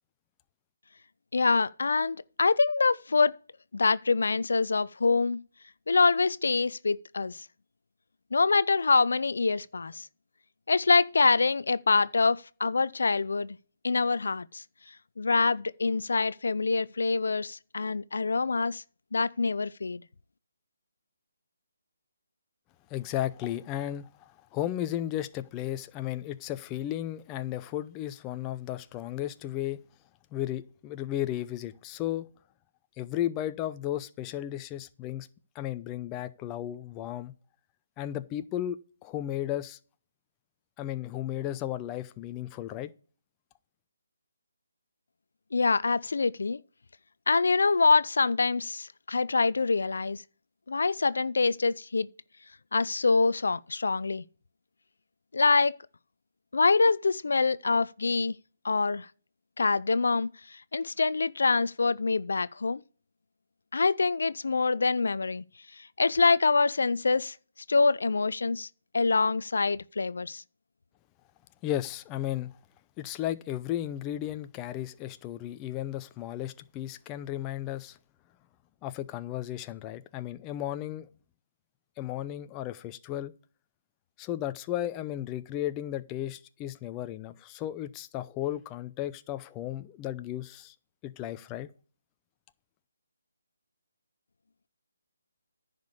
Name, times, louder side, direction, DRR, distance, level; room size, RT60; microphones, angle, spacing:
voice 1, 1.3-3.4 3.7-5.4 5.9-7.5 8.3-10.1 10.7-13.6 13.8-14.6 15.2-18.8 19.1-20.0 45.5-46.6 47.3-50.2 50.7-52.1 52.7-54.2 55.3-55.8 56.5-58.3 58.6-59.1 59.6-62.8 63.7-65.4 65.8-67.4 67.7-68.7 68.9-70.4, left 4 dB, 70° left, 0.5 m, -25 dB
voice 2, 22.9-29.8 30.3-32.3 33.0-35.3 35.5-37.3 38.0-39.8 40.8-42.9 71.6-72.5 73.0-78.0 78.8-81.1 82.0-83.3 84.2-90.7 91.0-91.7, left 12 dB, 20° left, 0.6 m, -34 dB
10.5 x 5.1 x 8.3 m
figure-of-eight pair, 150°, 0 cm